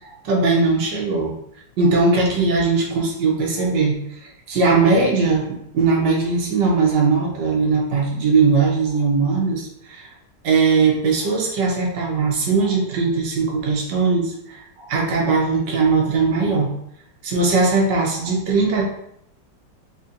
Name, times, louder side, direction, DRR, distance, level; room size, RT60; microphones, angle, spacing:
voice 1, 0.0-1.3 1.8-4.0 4.5-10.1 10.4-16.7 17.2-18.9, right 4 dB, 75° right, -1 dB, 1.4 m, -19 dB
4.1 x 2.9 x 2.6 m, 0.74 s
omnidirectional pair, 2.0 m